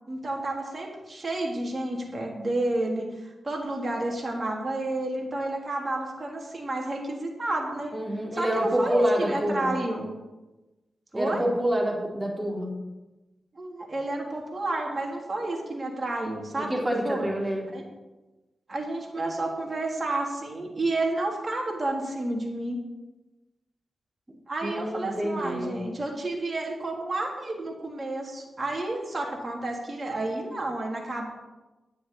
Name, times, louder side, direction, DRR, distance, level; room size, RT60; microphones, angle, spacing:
voice 1, 0.1-3.1 3.4-7.9 8.4-10.1 11.1-11.4 13.5-16.7 17.0-17.3 17.7-17.8 18.7-22.8 24.5-31.3, right 2 dB, 35° right, -1 dB, 3.4 m, -30 dB
voice 2, 7.9-9.8 11.1-12.8 16.5-17.7 24.6-25.8, equal, 20° right, -2 dB, 3.9 m, -27 dB
10.5 x 7.5 x 8.4 m, 1.1 s
cardioid pair, 65°, 0 cm